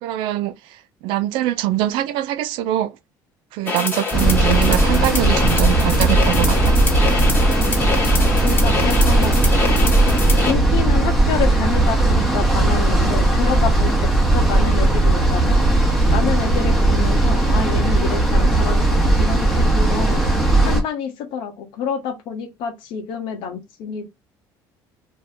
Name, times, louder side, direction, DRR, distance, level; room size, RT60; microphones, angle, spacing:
voice 1, 0.0-0.5 1.0-2.9 3.5-6.7, right 13 dB, 75° right, 0.4 m, -23 dB
sound 1, 3.7-10.5, left 4 dB, 20° left, 1.1 m, -24 dB
sound 2, 4.1-20.8, right 2 dB, ahead, 0.9 m, -17 dB
voice 2, 8.4-9.7 10.5-15.6 16.1-20.2 20.6-24.1, left 7 dB, 75° left, 1.0 m, -28 dB
2.7 x 2.2 x 3.5 m
cardioid pair, 120°, 9 cm